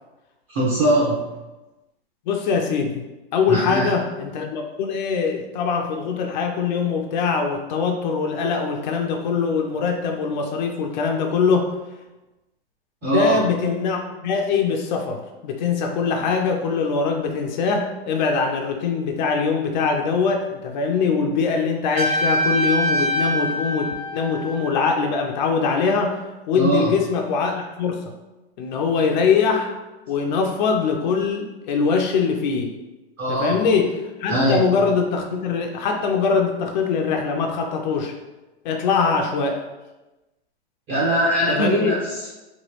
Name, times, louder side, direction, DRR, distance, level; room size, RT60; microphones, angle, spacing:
voice 1, 0.5-1.2 3.5-3.9 13.0-13.4 26.5-26.9 33.2-33.6 34.3-34.6 40.9-42.3, right 1 dB, 35° right, -8 dB, 0.8 m, -21 dB
voice 2, 2.3-3.0 3.3-11.7 13.0-26.2 26.5-28.0 28.6-29.8 30.1-32.7 33.3-38.1 38.6-39.6 41.5-41.9, left 5 dB, 45° left, 3 dB, 0.4 m, -22 dB
Trumpet, 21.9-24.8, equal, 70° right, 1.2 m, -24 dB
3.1 x 2.2 x 3.0 m, 1.1 s
hypercardioid pair, 125°, 31 cm